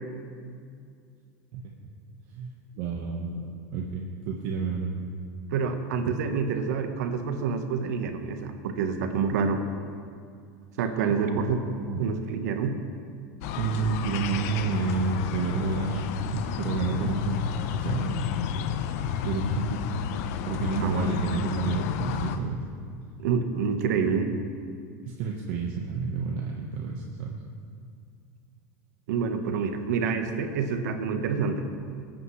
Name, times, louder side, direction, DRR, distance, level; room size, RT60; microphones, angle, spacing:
voice 1, 2.8-3.5 3.7-4.9 11.1-12.1 13.6-17.5 17.8-18.2 19.2-19.8 20.5-22.6 25.0-27.3, right 4 dB, 60° right, -1 dB, 1.2 m, -30 dB
voice 2, 5.5-9.6 10.8-11.6 12.0-12.8 20.8-21.2 23.2-24.3 29.1-31.6, right 6 dB, 80° right, 6 dB, 1.2 m, -27 dB
sound 1, 13.4-22.4, left 9 dB, 65° left, 0.7 m, -31 dB
20.5 x 8.9 x 3.2 m, 2.3 s
supercardioid pair, 125°, 9 cm